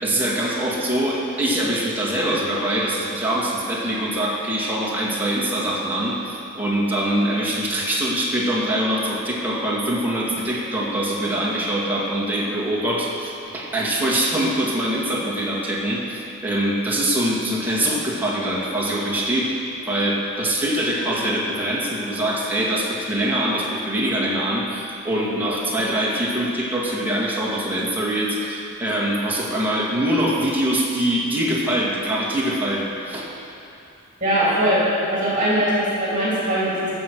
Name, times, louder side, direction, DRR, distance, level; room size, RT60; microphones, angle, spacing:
voice 1, 0.0-19.5 19.9-33.3, right 1 dB, 10° right, -5 dB, 2.0 m, -23 dB
voice 2, 34.2-34.8 35.1-36.9, right 1 dB, 40° right, -8 dB, 3.0 m, -21 dB
15.0 x 6.3 x 6.8 m, 2.6 s
head